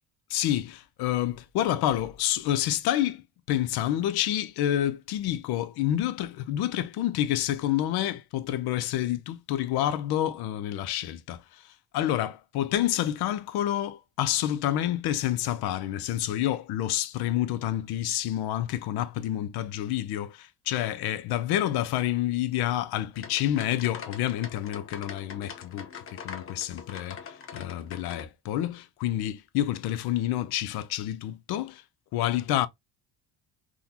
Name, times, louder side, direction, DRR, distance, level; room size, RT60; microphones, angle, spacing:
voice 1, 0.3-31.8 32.1-32.7, left 12 dB, 75° left, 0.6 m, -28 dB
sound 1, 23.1-28.2, left 6 dB, 35° left, 0.7 m, -43 dB
3.7 x 2.3 x 2.7 m
cardioid pair, 130°, 39 cm